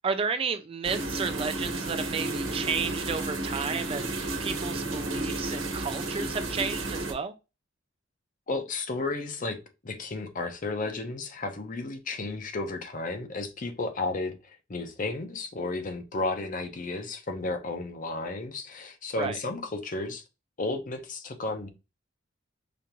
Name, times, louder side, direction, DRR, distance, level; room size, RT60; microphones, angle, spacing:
voice 1, 0.0-7.3 19.2-19.4, right 5 dB, 30° right, 0.3 m, -32 dB
sound 1, 0.8-7.1, right 2 dB, 85° right, 1.1 m, -32 dB
voice 2, 8.5-9.6 9.8-20.2 20.6-21.7, left 3 dB, 40° left, 0.6 m, -33 dB
5.0 x 2.4 x 2.9 m
head